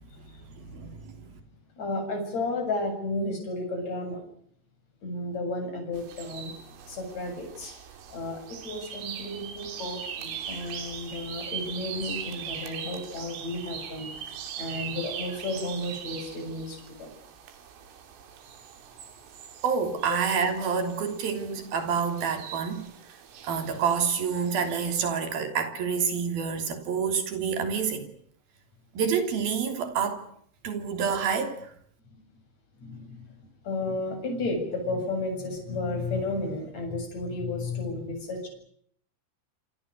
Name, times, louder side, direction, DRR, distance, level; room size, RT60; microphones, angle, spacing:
voice 1, 0.2-1.4 19.6-22.9 23.4-28.1 28.9-30.2 30.6-31.7, right 6 dB, 50° right, 4.6 m, -28 dB
voice 2, 1.8-4.2 5.0-6.5 6.9-7.7 8.1-17.1 20.1-20.2 32.8-38.5, left 2 dB, 35° left, 8.6 m, -33 dB
sound 1, 5.9-25.1, right 8 dB, 75° right, 5.6 m, -41 dB
27.5 x 26.5 x 6.5 m
omnidirectional pair, 5.8 m